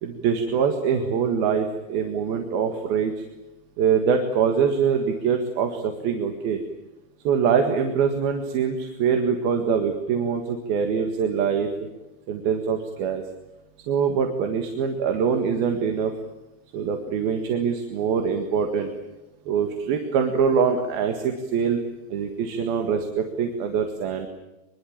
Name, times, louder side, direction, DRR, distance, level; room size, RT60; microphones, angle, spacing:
voice 1, 0.0-3.1 3.8-6.6 7.3-11.9 12.3-13.2 13.9-16.1 16.7-18.9 19.5-21.8 22.1-24.3, right 6 dB, 65° right, 4 dB, 3.5 m, -24 dB
24.0 x 23.0 x 8.8 m, 1.0 s
omnidirectional pair, 4.8 m